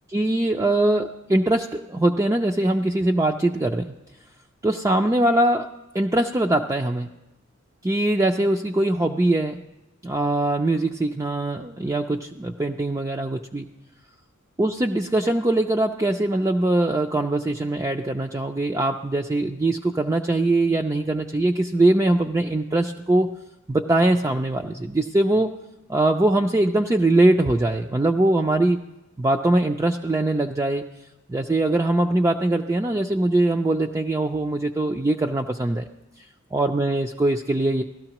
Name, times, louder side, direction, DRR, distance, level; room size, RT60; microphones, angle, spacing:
voice 1, 0.1-3.9 4.6-5.7 5.9-7.1 7.8-9.6 10.0-13.7 14.6-23.3 23.7-25.5 25.9-28.8 29.2-30.8 31.3-35.9 36.5-37.8, right 2 dB, 15° right, 2 dB, 0.3 m, -22 dB
16.5 x 13.0 x 2.9 m, 0.96 s
head